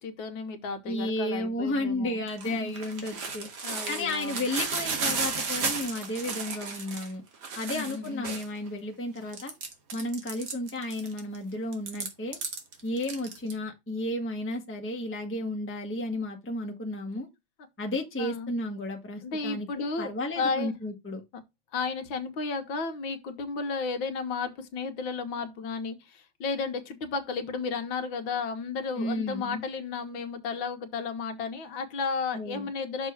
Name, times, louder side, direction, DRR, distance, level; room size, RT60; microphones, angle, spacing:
voice 1, 0.0-2.8 3.6-4.4 7.7-8.4 18.2-18.5 19.2-20.8 21.7-33.1, left 4 dB, 70° left, 1.6 m, -33 dB
voice 2, 0.8-3.5 3.9-7.2 7.5-9.5 9.9-12.4 12.8-17.3 17.8-21.2 29.0-29.6 32.3-32.7, left 1 dB, 10° left, 0.8 m, -33 dB
sound 1, 2.3-8.7 9.2-11.4 11.7-13.5, right 4 dB, 55° right, 1.8 m, -33 dB
6.3 x 3.6 x 5.8 m
omnidirectional pair, 2.3 m